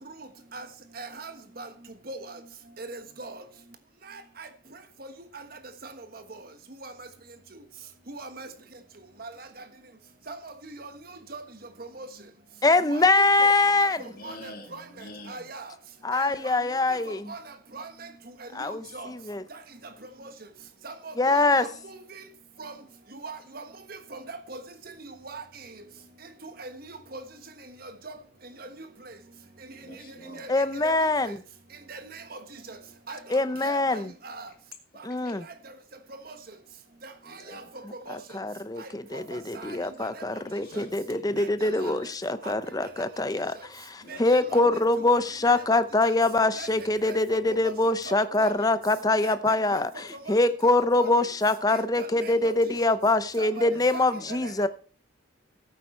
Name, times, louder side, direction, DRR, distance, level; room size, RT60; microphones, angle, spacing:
voice 1, 1.0-1.7 2.1-2.2 2.8-3.4 4.1-4.5 6.8-7.1 8.1-8.5 9.2-9.3 10.3-10.5 10.8-10.9 11.3-11.4 12.0-12.1 12.9-13.2 14.2-14.8 15.3-15.7 16.1-16.6 17.1-17.4 17.7-18.1 18.4-19.1 20.2-20.3 20.8-21.1 21.5-22.2 22.6-22.7 23.1-23.6 23.9-24.6 25.2-25.4 26.4-27.2 28.0-28.1 28.6-28.7 30.3-30.5 30.8-30.9 31.9-32.4 32.7-32.8 33.1-33.2 33.6-34.5 36.3-36.4 37.0-37.1 37.5-37.6 38.1-38.2 38.8-39.2 39.5-40.2 40.7-40.8 41.4-41.5 41.8-41.9 42.4-42.5 44.1-44.2 44.5-44.6 46.6-46.7 47.0-47.1 47.6-47.7 48.4-48.5 49.2-49.3 49.7-49.8 50.6-50.7 51.0-51.1 52.0-52.5 53.4-53.5 53.9-54.0, right 3 dB, 50° right, 1.3 m, -40 dB
voice 2, 12.6-14.1 16.0-17.3 18.5-19.4 21.2-21.7 30.5-31.4 33.3-34.1 35.0-35.5 38.1-54.7, left 2 dB, 20° left, 0.6 m, -24 dB
voice 3, 14.0-15.5 29.8-30.6 33.5-34.1 35.2-35.3 37.2-37.7 39.3-39.4 40.6-42.1 44.0-45.0 52.2-52.5 53.6-54.7, left 1 dB, 50° left, 2.3 m, -47 dB
14.0 x 8.4 x 4.4 m
head